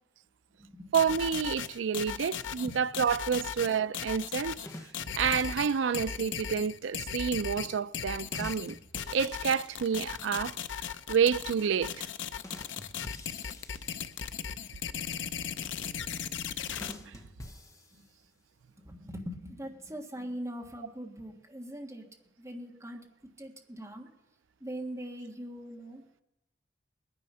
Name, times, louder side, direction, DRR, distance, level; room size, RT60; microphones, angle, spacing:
sound 1, 0.9-16.9, left 8 dB, 85° left, 0.6 m, -37 dB
voice 1, 0.9-4.6 5.1-8.8 9.1-10.5 11.1-12.1, right 7 dB, 90° right, 0.4 m, -29 dB
sound 2, 4.7-6.1 8.3-10.3 12.4-14.6 16.8-18.4, left 1 dB, 20° left, 1.0 m, -48 dB
voice 2, 15.5-15.9 18.0-18.1 18.8-22.1 22.4-23.0 23.4-24.1 24.6-26.0, equal, 15° right, 1.6 m, -41 dB
20.0 x 9.8 x 5.6 m
head